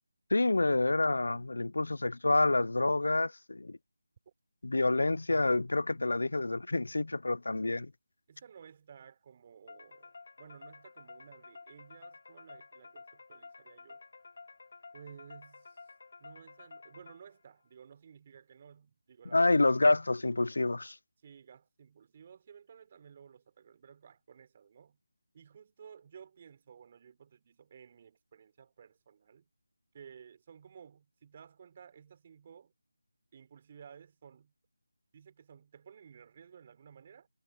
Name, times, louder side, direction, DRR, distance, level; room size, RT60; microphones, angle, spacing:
voice 1, 0.3-3.8 4.6-7.9 19.3-20.9, left 2 dB, 75° left, 0.3 m, -28 dB
voice 2, 8.3-14.0 14.9-15.8 16.2-19.9 21.2-25.0 25.3-29.5 29.9-32.7 33.3-34.5 35.1-37.3, right 7 dB, 30° right, 4.1 m, -55 dB
sound 1, 9.7-17.5, left 4 dB, 55° left, 3.4 m, -52 dB
figure-of-eight pair, 170°, 0 cm